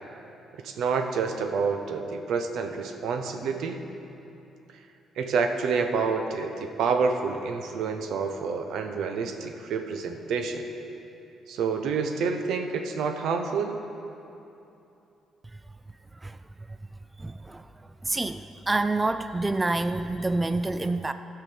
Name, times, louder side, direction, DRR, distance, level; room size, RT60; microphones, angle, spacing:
voice 1, 0.6-3.8 5.2-10.7 11.5-13.8, right 5 dB, 80° right, 5 dB, 0.8 m, -28 dB
voice 2, 17.2-17.6 18.0-18.4 18.7-21.1, right 2 dB, 20° right, 10 dB, 0.3 m, -27 dB
14.5 x 4.8 x 6.9 m, 2.9 s
cardioid pair, 90°, 0 cm